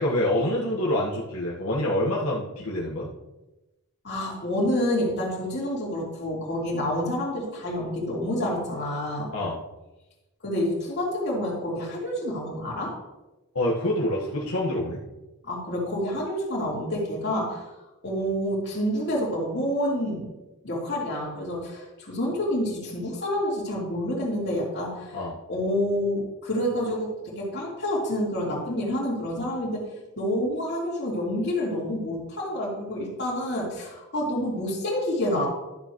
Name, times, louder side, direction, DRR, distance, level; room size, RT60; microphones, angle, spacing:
voice 1, 0.0-3.1 9.3-9.6 13.5-15.0 25.1-25.3, left 1 dB, 85° left, -6 dB, 1.6 m, -26 dB
voice 2, 4.0-9.3 10.4-12.9 15.4-17.7 18.0-20.3 20.6-25.2 25.5-29.9 30.2-35.5, left 1 dB, 50° left, -4 dB, 3.1 m, -28 dB
12.5 x 7.0 x 3.1 m, 1.0 s
head